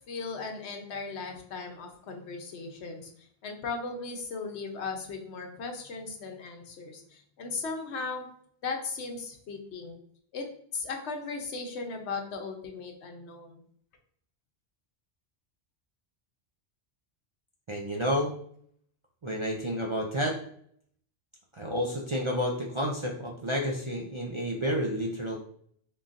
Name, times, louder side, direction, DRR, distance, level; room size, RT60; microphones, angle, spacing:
voice 1, 0.1-3.1 3.4-8.3 8.6-10.0 10.3-10.4 10.7-13.6, left 4 dB, 80° left, 4 dB, 1.0 m, -37 dB
voice 2, 17.7-18.3 19.2-20.4 21.5-25.4, equal, 45° right, 0 dB, 0.4 m, -30 dB
4.0 x 3.7 x 2.5 m, 0.63 s
omnidirectional pair, 1.1 m